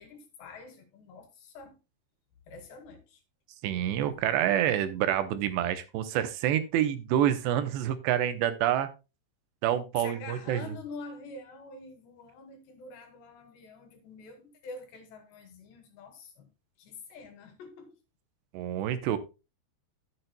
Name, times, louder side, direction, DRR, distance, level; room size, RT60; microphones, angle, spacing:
voice 1, 0.0-1.8 2.5-3.2 10.0-16.5 16.8-18.0, left 3 dB, 75° left, 4.1 m, -46 dB
voice 2, 3.6-8.9 9.6-10.6 18.5-19.2, right 11 dB, 80° right, 3.1 m, -27 dB
13.0 x 8.3 x 2.2 m
omnidirectional pair, 5.0 m